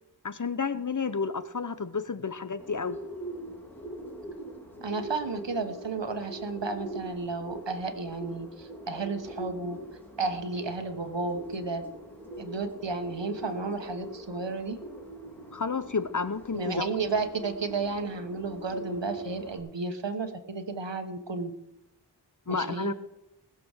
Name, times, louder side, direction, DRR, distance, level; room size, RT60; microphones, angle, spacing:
voice 1, 0.2-3.0 15.5-17.0 22.5-22.9, left 5 dB, 45° left, 12 dB, 0.8 m, -31 dB
Bird, 2.6-19.6, right 1 dB, 5° left, 3.1 m, -42 dB
voice 2, 4.8-9.8 10.2-11.8 12.4-14.8 16.5-21.5 22.5-22.9, right 3 dB, 90° right, 7 dB, 1.3 m, -32 dB
19.5 x 6.9 x 6.5 m, 0.90 s
wide cardioid pair, 55°, 42 cm